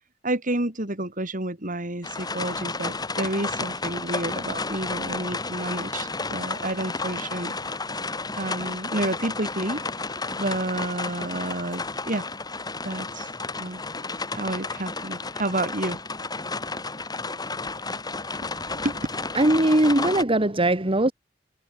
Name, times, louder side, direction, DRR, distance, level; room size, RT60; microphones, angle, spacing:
voice 1, 0.2-7.6 8.4-9.8 10.4-12.3 12.8-13.3 13.6-13.8 14.3-16.0 18.8-19.0, right 1 dB, 45° right, 3.8 m, -30 dB
sound 1, 2.0-20.2, left 3 dB, 20° left, 2.9 m, -32 dB
voice 2, 19.4-21.1, right 1 dB, 30° right, 1.9 m, -20 dB
head